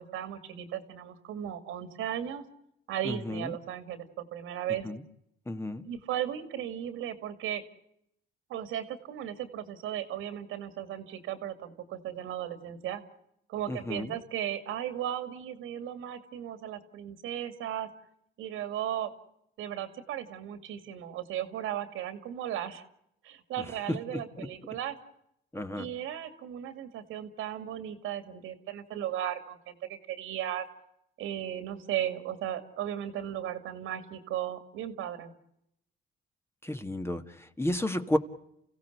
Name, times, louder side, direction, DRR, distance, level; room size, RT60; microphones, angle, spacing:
voice 1, 0.0-2.4 2.9-4.9 5.8-7.6 8.5-13.0 13.5-17.9 18.4-19.1 19.6-22.8 23.2-25.0 25.8-30.7 31.2-35.3, right 10 dB, 90° right, 11 dB, 2.4 m, -36 dB
voice 2, 3.0-3.6 4.8-5.0 5.5-5.9 13.7-14.1 23.9-24.5 25.5-25.9 36.6-38.2, left 1 dB, 10° left, 8 dB, 1.7 m, -32 dB
30.0 x 16.0 x 8.0 m, 0.79 s
cardioid pair, 90°, 20 cm